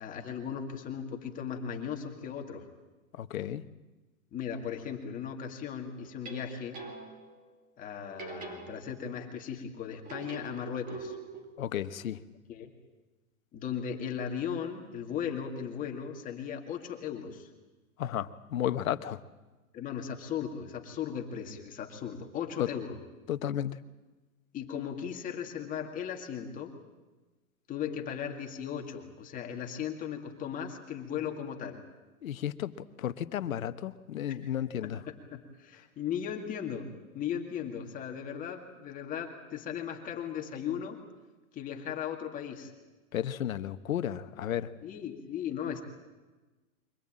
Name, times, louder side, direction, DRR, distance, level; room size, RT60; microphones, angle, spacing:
voice 1, 0.0-2.7 4.3-6.8 7.8-11.2 12.5-12.7 13.5-17.5 19.7-23.0 24.5-26.7 27.7-31.8 34.3-34.4 34.8-41.0 41.5-42.7 44.8-45.8, left 8 dB, 20° left, 3 dB, 2.2 m, -37 dB
voice 2, 3.1-3.6 11.6-12.2 18.0-19.2 22.6-22.7 23.3-23.8 32.2-35.0 43.1-44.7, left 10 dB, 70° left, 11 dB, 1.2 m, -33 dB
sound 1, 6.0-7.4 8.2-9.3 10.1-11.5, right 3 dB, 20° right, 2.4 m, -44 dB
24.0 x 18.0 x 8.8 m, 1.2 s
hypercardioid pair, 150°, 43 cm